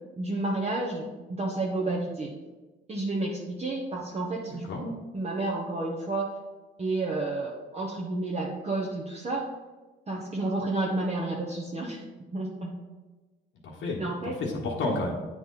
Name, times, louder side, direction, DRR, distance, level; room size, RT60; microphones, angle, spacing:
voice 1, 0.2-2.3 2.9-6.3 6.8-9.4 10.1-12.0 12.3-12.7 14.0-14.4, right 2 dB, 30° right, -3 dB, 1.1 m, -31 dB
voice 2, 4.5-4.8 13.6-15.1, left 2 dB, 75° left, -2 dB, 1.2 m, -31 dB
8.8 x 3.9 x 3.8 m, 1.2 s
cardioid pair, 90°, 20 cm